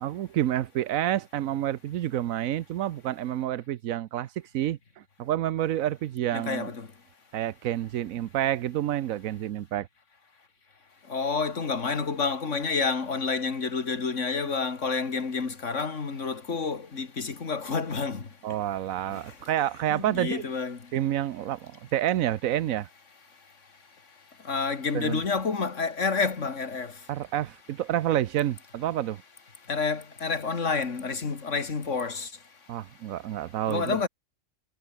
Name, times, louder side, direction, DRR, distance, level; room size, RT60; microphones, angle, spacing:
voice 1, 0.0-4.8 5.2-6.7 7.3-9.9 18.4-20.4 20.9-22.9 24.9-25.2 27.1-29.2 32.7-34.0, right 12 dB, 90° right, 1.1 m, -29 dB
voice 2, 6.3-6.9 11.1-18.3 19.1-19.2 19.9-20.8 24.5-26.9 29.7-32.3 33.7-34.1, left 4 dB, 65° left, 2.6 m, -29 dB
omnidirectional pair, 1.4 m